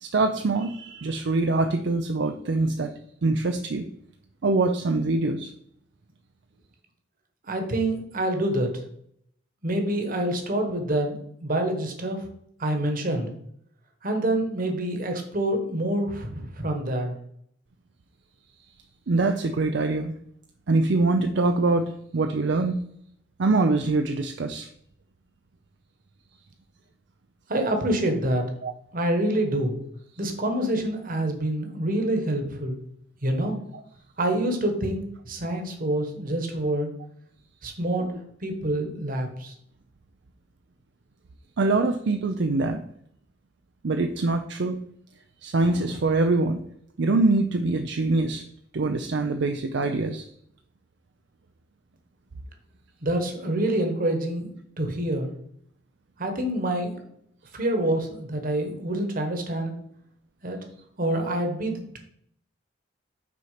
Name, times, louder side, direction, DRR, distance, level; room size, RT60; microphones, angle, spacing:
voice 1, 0.0-2.9 3.2-3.8 4.4-5.5 19.1-20.1 20.7-22.8 23.4-24.7 28.6-28.7 33.7-33.8 38.0-38.1 41.6-42.8 43.8-44.8 45.4-46.6 47.0-48.4 48.7-50.2, right 3 dB, 65° right, 6 dB, 0.5 m, -24 dB
voice 2, 7.5-8.8 9.6-12.2 12.6-13.3 14.0-17.2 27.5-28.4 28.9-29.8 30.2-32.8 33.2-33.6 34.2-36.9 37.6-38.1 38.4-39.5 53.0-55.3 56.2-57.0 57.5-59.7 60.4-60.6 61.0-62.0, right 1 dB, 45° right, 4 dB, 1.4 m, -26 dB
6.2 x 4.4 x 5.7 m, 0.69 s
head